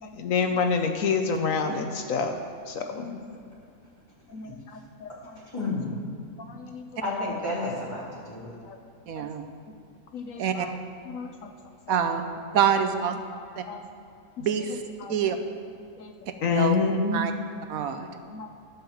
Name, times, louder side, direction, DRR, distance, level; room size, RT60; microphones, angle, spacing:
voice 1, 0.0-2.4 2.7-3.1 4.3-5.4 6.5-6.8 8.7-8.8 9.2-9.3 10.1-10.7 11.1-11.5 11.9-12.0 13.6-13.8 14.4-14.5 15.0-15.1 16.0-16.1 16.4-17.2 18.3-18.5, left 5 dB, 70° left, 1.1 m, -28 dB
voice 2, 5.4-5.9 7.0-8.5, left 2 dB, 20° left, 3.2 m, -31 dB
voice 3, 9.1-9.4 10.4-10.7 11.9-12.2 12.5-13.1 13.6-13.7 14.4-14.8 15.1-15.4 16.5-16.8 17.1-17.3 17.7-18.1, right 8 dB, 80° right, 1.2 m, -25 dB
13.0 x 5.6 x 7.1 m
omnidirectional pair, 1.5 m